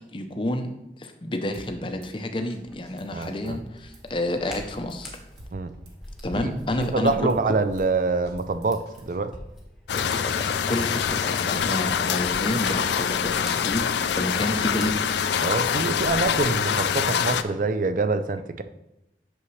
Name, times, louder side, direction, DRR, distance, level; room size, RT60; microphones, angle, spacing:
voice 1, 0.1-0.7 1.0-5.1 6.2-7.5 9.9-15.0, left 1 dB, 30° left, 6 dB, 0.6 m, -29 dB
Drum kit / Snare drum, 1.5-2.1 2.5-2.6 2.9-4.0 4.4-4.6 4.9-6.0 6.3-6.4 6.7-7.9 8.3-9.2, right 1 dB, 75° right, 1.0 m, -50 dB
Hands, 2.6-16.6, equal, ahead, 1.3 m, -45 dB
voice 2, 3.1-3.6 5.5-5.7 6.4-6.5 6.8-9.4 11.5-11.6 14.2-14.3 15.4-18.6, right 3 dB, 45° right, 11 dB, 0.4 m, -26 dB
sound 1, 9.9-17.4, left 7 dB, 80° left, 0.4 m, -25 dB
8.4 x 6.4 x 3.2 m, 0.90 s
head